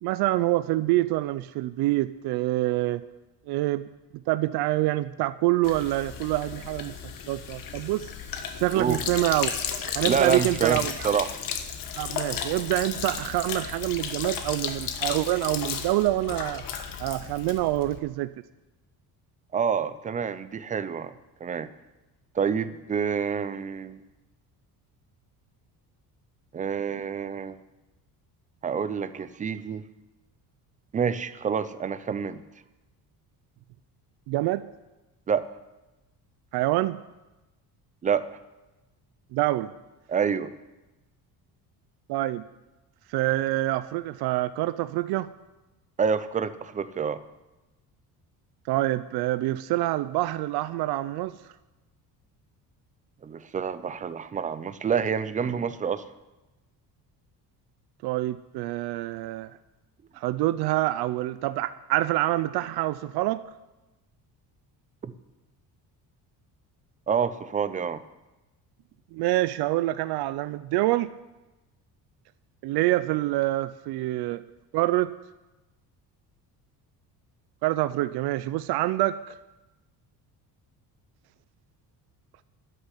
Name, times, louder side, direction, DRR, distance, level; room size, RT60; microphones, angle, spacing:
voice 1, 0.0-3.0 3.5-3.9 4.3-6.9 7.3-8.1 8.6-9.5 9.9-11.1 12.0-16.6 17.0-18.3 34.3-34.6 36.5-37.0 39.3-39.7 42.1-42.5 43.1-45.3 48.7-51.3 58.0-59.5 60.1-63.4 69.1-71.1 72.6-74.4 74.7-75.1 77.6-79.4, right 17 dB, 75° right, 14 dB, 0.6 m, -26 dB
Sink (filling or washing), 5.6-18.0, left 7 dB, 55° left, 1.4 m, -34 dB
voice 2, 10.1-11.3 19.5-21.1 21.4-21.7 22.3-24.0 26.5-27.6 28.6-29.8 30.9-32.4 35.3-35.4 38.0-38.2 40.1-40.5 46.0-47.2 53.2-56.0 65.0-65.1 67.1-68.0, right 6 dB, 20° right, 13 dB, 0.4 m, -27 dB
13.0 x 6.7 x 9.7 m, 1.0 s
cardioid pair, 170°, 39 cm